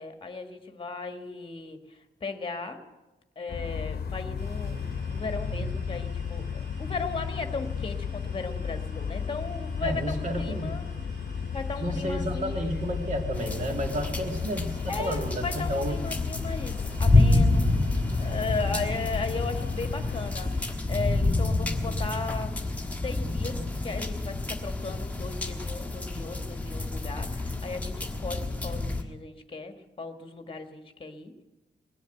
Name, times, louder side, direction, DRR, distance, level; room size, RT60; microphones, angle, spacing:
voice 1, 0.0-2.8 3.3-10.8 11.5-12.7 14.9-17.7 18.2-22.5 23.0-31.3, left 3 dB, 25° left, 7 dB, 1.5 m, -36 dB
sound 1, 3.5-20.3, left 6 dB, 55° left, 0.9 m, -34 dB
sound 2, 4.4-20.7, right 2 dB, 65° right, 5.1 m, -48 dB
voice 2, 9.8-10.8 11.8-16.0, equal, 40° right, 4 dB, 2.1 m, -31 dB
sound 3, 13.3-29.0, left 2 dB, 5° left, 1.4 m, -28 dB
20.0 x 7.2 x 9.1 m, 1.1 s
wide cardioid pair, 130°, 19 cm